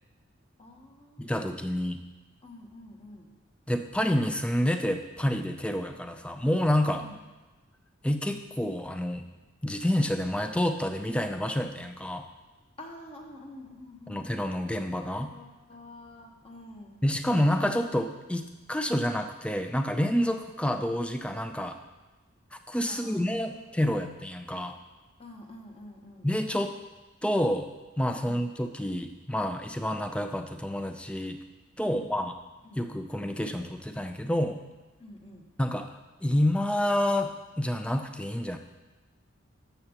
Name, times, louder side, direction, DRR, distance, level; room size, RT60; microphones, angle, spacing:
voice 1, 0.6-1.7 2.4-3.3 7.0-7.2 12.8-14.3 15.3-17.0 22.9-23.6 25.2-26.3 28.2-28.4 31.8-32.2 32.6-32.8 35.0-35.5, left 1 dB, 30° left, 1 dB, 1.1 m, -47 dB
voice 2, 1.2-2.0 3.7-7.0 8.0-9.2 9.6-12.3 14.1-15.3 17.0-21.8 22.5-24.8 26.2-26.7 27.2-27.7 28.0-31.4 31.8-32.3 32.8-34.6 35.6-35.9 36.2-38.6, left 1 dB, 5° left, 6 dB, 0.4 m, -28 dB
12.5 x 6.7 x 2.9 m, 1.2 s
head